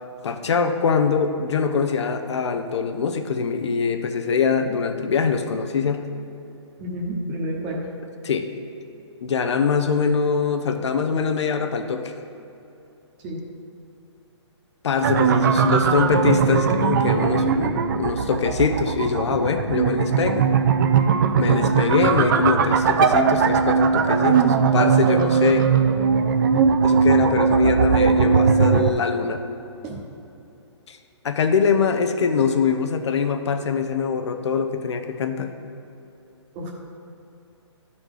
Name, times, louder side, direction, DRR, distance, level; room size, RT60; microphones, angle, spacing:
voice 1, 0.2-6.0 8.2-8.5 9.2-12.1 14.8-20.5 21.4-25.7 26.8-29.4 30.9-31.0 31.2-35.5, left 5 dB, 70° left, 7 dB, 0.8 m, -23 dB
voice 2, 6.8-7.8 13.2-13.4 29.8-30.0 36.5-36.7, right 1 dB, 25° right, -2 dB, 1.1 m, -29 dB
sound 1, 15.0-28.9, right 6 dB, 45° right, 0.4 m, -19 dB
11.0 x 4.3 x 4.8 m, 2.8 s
hypercardioid pair, 155°, 15 cm